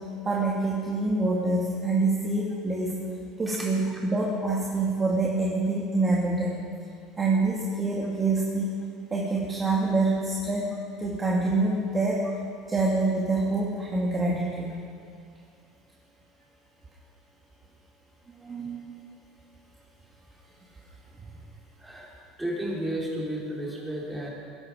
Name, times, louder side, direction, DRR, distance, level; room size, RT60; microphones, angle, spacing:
voice 1, 0.0-3.0 3.4-6.6 7.2-8.7 9.1-10.7 11.0-12.3 12.7-14.8 18.4-18.8 21.2-21.3, right 2 dB, 25° right, -4 dB, 2.3 m, -26 dB
voice 2, 21.8-22.1 22.4-24.3, right 1 dB, 5° right, -5 dB, 4.8 m, -32 dB
22.0 x 11.0 x 5.1 m, 2.3 s
supercardioid pair, 110°, 0 cm